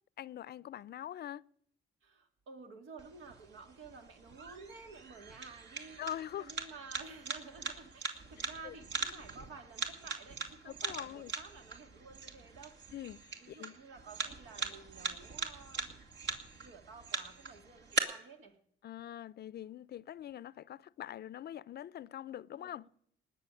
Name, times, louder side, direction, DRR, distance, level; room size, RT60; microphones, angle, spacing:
voice 1, 0.2-1.4 6.0-6.5 8.6-8.7 10.6-11.3 12.9-13.8 18.8-22.9, left 11 dB, 55° left, 0.5 m, -44 dB
voice 2, 2.0-6.0 6.4-12.8 13.4-16.0 16.6-18.6 22.5-22.9, right 4 dB, 85° right, 2.3 m, -52 dB
sound 1, 3.0-18.0, right 4 dB, 65° right, 2.4 m, -41 dB
19.5 x 6.9 x 9.0 m
cardioid pair, 90°, 20 cm